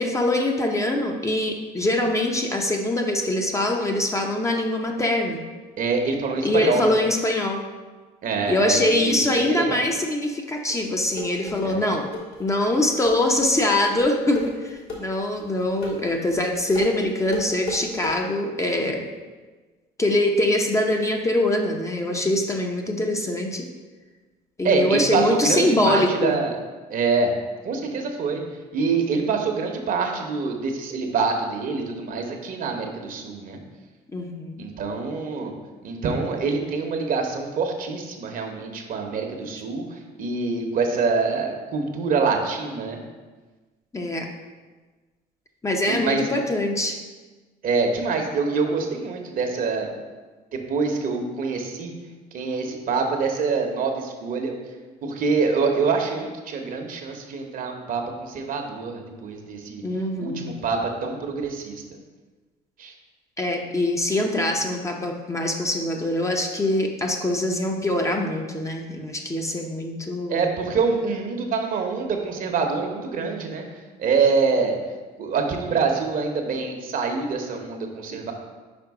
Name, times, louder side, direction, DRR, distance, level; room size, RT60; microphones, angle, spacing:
voice 1, 0.0-5.4 6.4-7.6 8.5-12.1 12.4-19.1 20.0-23.7 24.6-26.4 34.1-34.6 43.9-44.3 45.6-47.0 59.8-60.6 63.4-70.5, left 1 dB, 15° left, 2 dB, 0.7 m, -23 dB
voice 2, 5.8-6.8 8.2-9.2 9.5-9.8 11.6-11.8 24.6-26.6 26.9-27.4 27.6-28.4 28.7-33.6 34.6-35.5 35.8-43.0 45.8-46.4 47.6-49.9 50.5-51.9 52.3-54.5 55.0-59.8 60.2-61.8 62.8-62.9 70.3-73.6 74.0-74.8 75.2-78.3, right 4 dB, 55° right, 3 dB, 1.0 m, -25 dB
sound 1, 10.7-18.1, left 2 dB, 70° left, 1.8 m, -34 dB
5.2 x 4.7 x 4.7 m, 1.3 s
cardioid pair, 110°, 17 cm